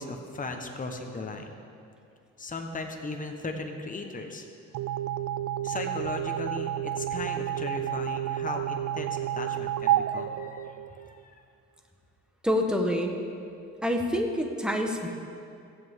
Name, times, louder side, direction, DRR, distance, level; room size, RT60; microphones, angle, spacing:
voice 1, 0.0-1.5 2.4-4.4 5.6-11.4, left 3 dB, 25° left, 4 dB, 1.2 m, -37 dB
sound 1, 4.7-11.2, right 11 dB, 75° right, 0.5 m, -30 dB
voice 2, 12.4-13.2 13.8-15.1, equal, 5° right, 2 dB, 1.3 m, -27 dB
17.0 x 7.9 x 3.7 m, 2.5 s
cardioid pair, 90°, 30 cm